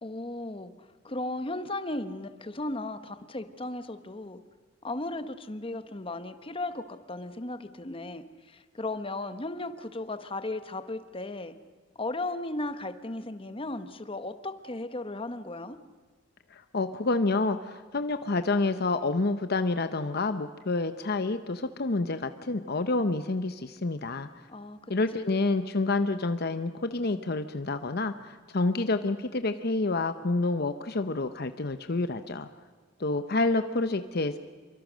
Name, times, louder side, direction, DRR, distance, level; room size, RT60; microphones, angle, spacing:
voice 1, 0.0-4.4 4.8-11.5 12.0-15.8 24.5-24.8 25.1-25.4, left 2 dB, 30° left, 10 dB, 1.2 m, -36 dB
voice 2, 16.5-24.3 24.9-32.5 33.0-34.4, left 3 dB, 55° left, 9 dB, 0.9 m, -28 dB
27.0 x 24.0 x 6.3 m, 1.5 s
head